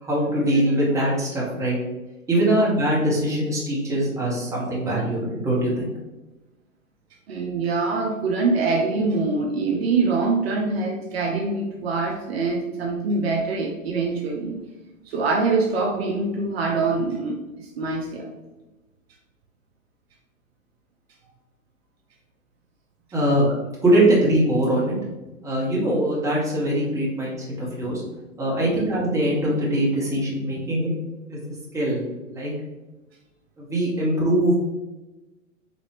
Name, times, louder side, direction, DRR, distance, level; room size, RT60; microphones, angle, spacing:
voice 1, 0.0-1.8 2.3-5.9 23.1-23.5 23.8-25.0 25.4-28.0 28.4-30.9 31.3-31.4 31.7-32.5 33.6-34.5, right 1 dB, 10° right, -5 dB, 0.8 m, -22 dB
voice 2, 7.3-14.6 15.1-18.3 28.6-28.8, right 3 dB, 50° right, 0 dB, 0.6 m, -24 dB
3.3 x 2.7 x 3.0 m, 1.1 s
figure-of-eight pair, 105°, 40 cm